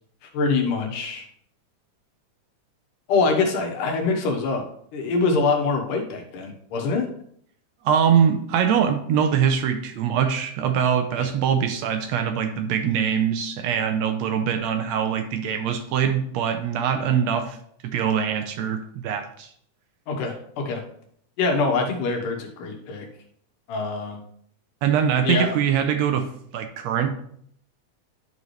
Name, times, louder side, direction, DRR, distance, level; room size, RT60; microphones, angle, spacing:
voice 1, 0.3-1.3 3.1-4.6 4.9-7.1 11.2-11.3 20.1-20.8 21.4-23.1 23.7-24.2 25.2-25.5, left 4 dB, 80° left, 3 dB, 2.8 m, -24 dB
voice 2, 7.8-17.6 17.9-19.5 24.8-26.2 26.5-27.1, right 8 dB, 75° right, 6 dB, 1.6 m, -23 dB
12.0 x 4.2 x 3.2 m, 0.65 s
omnidirectional pair, 3.7 m